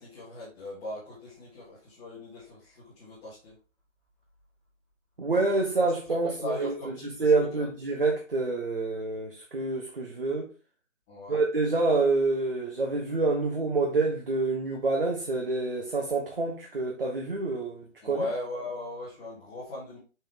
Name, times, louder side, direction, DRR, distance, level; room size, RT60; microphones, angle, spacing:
voice 1, 0.0-3.5 6.2-7.7 11.1-11.4 18.0-20.0, left 2 dB, 5° left, 1.2 m, -39 dB
voice 2, 5.2-6.7 7.0-10.5 11.3-18.3, right 3 dB, 45° right, 1.2 m, -27 dB
5.8 x 5.4 x 3.7 m
figure-of-eight pair, 165°, 39 cm